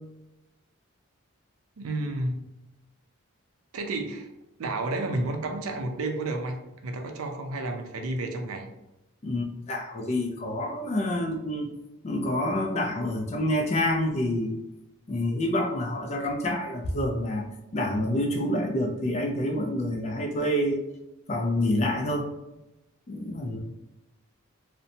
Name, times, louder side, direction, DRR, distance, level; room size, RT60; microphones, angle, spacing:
voice 1, 1.8-2.4 3.7-4.3 4.6-8.7, right 2 dB, 80° right, 4 dB, 0.4 m, -31 dB
voice 2, 9.2-11.7 12.0-14.6 15.1-17.5 17.7-20.8 21.3-22.3 23.1-23.6, left 1 dB, 30° left, 2 dB, 0.3 m, -27 dB
2.7 x 2.1 x 2.6 m, 0.95 s
head